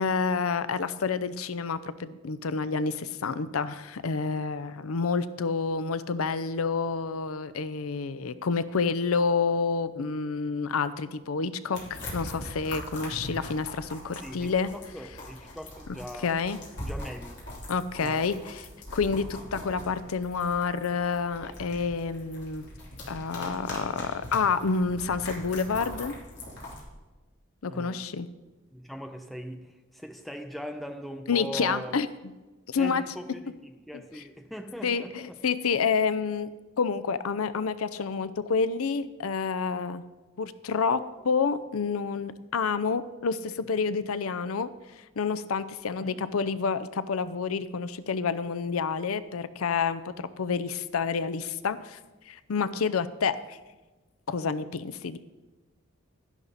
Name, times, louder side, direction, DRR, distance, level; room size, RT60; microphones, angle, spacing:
voice 1, 0.0-14.7 16.2-16.6 17.7-18.6 18.9-22.7 23.1-26.2 27.6-28.3 31.3-32.1 32.7-33.0 34.8-36.5 36.8-40.0 40.4-44.7 45.2-52.0 52.3-53.6 54.3-55.2, left 5 dB, 90° left, 13 dB, 0.6 m, -29 dB
sound 1, 11.7-26.8, left 1 dB, 55° left, 3.2 m, -41 dB
voice 2, 14.2-16.4 16.8-17.4 18.0-18.2 27.7-28.1 28.7-32.0 32.8-35.4 46.0-46.2, equal, ahead, 5 dB, 0.7 m, -40 dB
11.5 x 11.0 x 4.1 m, 1.2 s
head